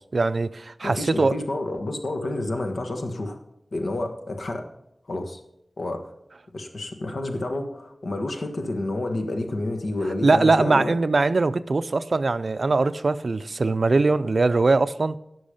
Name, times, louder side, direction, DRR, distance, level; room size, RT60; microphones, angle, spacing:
voice 1, 0.0-1.4 10.2-15.2, right 3 dB, 65° right, 0.5 m, -21 dB
voice 2, 0.8-3.4 3.7-4.7 5.1-5.4 5.8-6.1 6.5-10.9, left 2 dB, 80° left, 1.5 m, -29 dB
15.5 x 6.3 x 5.2 m
wide cardioid pair, 80°, 0 cm